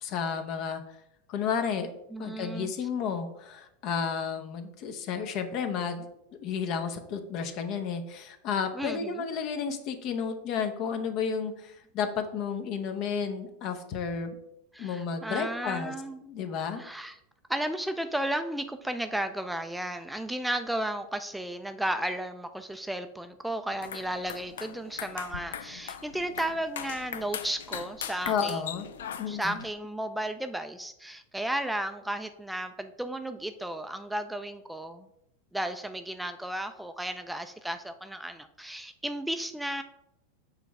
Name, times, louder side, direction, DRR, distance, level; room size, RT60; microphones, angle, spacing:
voice 1, 0.0-0.8 1.3-1.9 2.2-6.1 6.3-14.4 14.8-15.9 16.2-16.8 28.3-28.9 29.2-29.6, left 6 dB, 50° left, 7 dB, 0.8 m, -32 dB
voice 2, 2.1-2.7 8.7-9.2 14.7-16.2 16.8-17.2 17.5-28.6 29.0-35.1 35.5-39.8, right 1 dB, 5° right, 8 dB, 0.4 m, -34 dB
sound 1, 23.7-29.7, left 9 dB, 70° left, 0.4 m, -40 dB
6.7 x 3.1 x 4.7 m, 0.82 s
hypercardioid pair, 90°, 0 cm